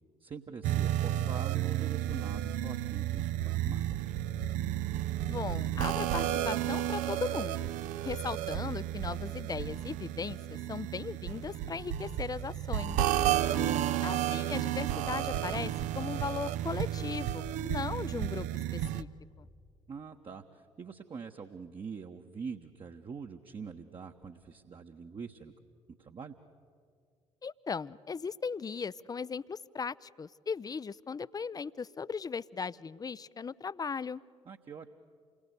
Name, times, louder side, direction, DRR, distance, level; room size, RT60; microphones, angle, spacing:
voice 1, 0.2-4.0 13.5-14.0 19.9-25.5 26.0-26.4 34.5-34.9, right 5 dB, 35° right, 3 dB, 1.3 m, -44 dB
sound 1, 0.6-19.0, right 12 dB, 60° right, 0.7 m, -32 dB
voice 2, 5.3-7.7 8.0-13.0 14.0-18.5 18.7-19.1 19.4-19.5 27.4-34.2, left 5 dB, 25° left, 20 dB, 0.6 m, -38 dB
28.5 x 21.5 x 8.3 m, 2.2 s
figure-of-eight pair, 45°, 15 cm